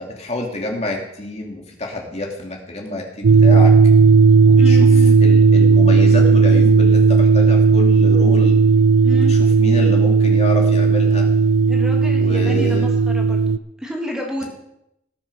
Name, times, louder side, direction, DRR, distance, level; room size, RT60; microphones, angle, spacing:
voice 1, 0.0-3.7 4.5-4.9 5.2-8.6 9.1-11.3 12.1-12.9, left 1 dB, 35° left, 1 dB, 2.5 m, -28 dB
sound 1, 3.2-13.6, right 4 dB, 80° right, 0.5 m, -13 dB
voice 2, 4.6-5.2 9.0-9.3 11.7-13.4 13.8-14.5, equal, 5° right, 0 dB, 2.2 m, -30 dB
19.5 x 7.4 x 6.0 m, 0.80 s
head